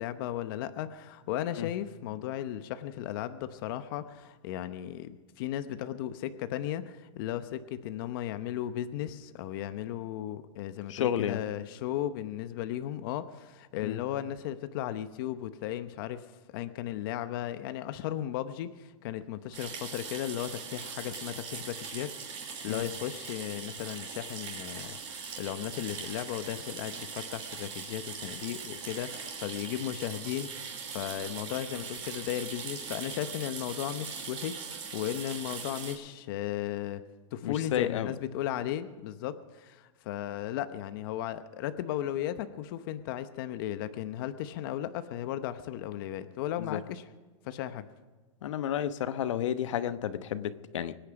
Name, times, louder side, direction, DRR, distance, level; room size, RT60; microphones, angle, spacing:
voice 1, 0.0-16.2 16.5-37.0 37.3-47.0 47.4-47.8, left 12 dB, 45° left, 11 dB, 0.9 m, -36 dB
voice 2, 10.9-11.4 13.8-14.0 22.7-22.8 37.4-38.1 46.6-46.8 48.4-50.9, left 10 dB, 70° left, 12 dB, 1.0 m, -31 dB
sound 1, 19.5-36.0, right 6 dB, 30° right, 5.6 m, -41 dB
24.5 x 10.0 x 5.1 m, 1.3 s
supercardioid pair, 165°, 16 cm